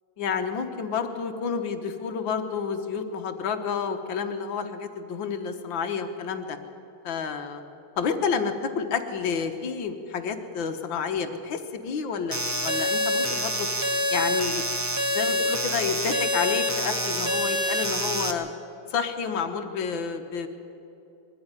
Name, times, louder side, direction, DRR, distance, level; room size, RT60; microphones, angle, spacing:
voice 1, 0.2-6.6 7.0-7.6 8.0-13.7 14.1-14.6 15.1-18.5 18.9-20.5, left 6 dB, 65° left, 7 dB, 1.8 m, -29 dB
sound 1, 12.3-18.3, equal, 15° right, 0.5 m, -26 dB
22.0 x 13.5 x 9.7 m, 2.9 s
omnidirectional pair, 2.4 m